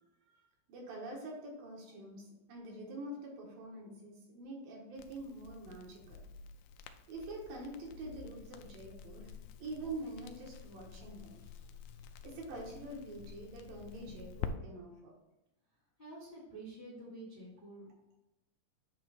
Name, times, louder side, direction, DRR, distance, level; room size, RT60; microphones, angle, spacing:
voice 1, 0.7-6.2 7.1-9.3 9.6-11.4 12.2-15.1, right 2 dB, 75° right, -2 dB, 3.3 m, -45 dB
Crackle, 5.0-14.5, left 7 dB, 85° left, 1.8 m, -48 dB
voice 2, 16.0-17.9, right 2 dB, 55° left, -7 dB, 0.5 m, -49 dB
7.9 x 3.2 x 4.9 m, 0.93 s
omnidirectional pair, 4.0 m